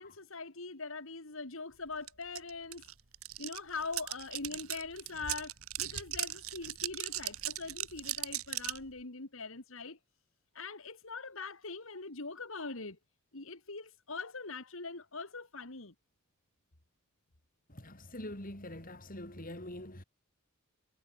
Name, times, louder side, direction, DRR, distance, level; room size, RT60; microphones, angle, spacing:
voice 1, 0.0-2.9 3.4-10.0 10.5-13.0 13.3-15.9, left 4 dB, 65° left, 2.3 m, -42 dB
sound 1, 2.1-2.2 2.4-8.8, right 14 dB, 80° right, 1.7 m, -38 dB
voice 2, 17.7-20.0, left 1 dB, 40° left, 6.1 m, -44 dB
head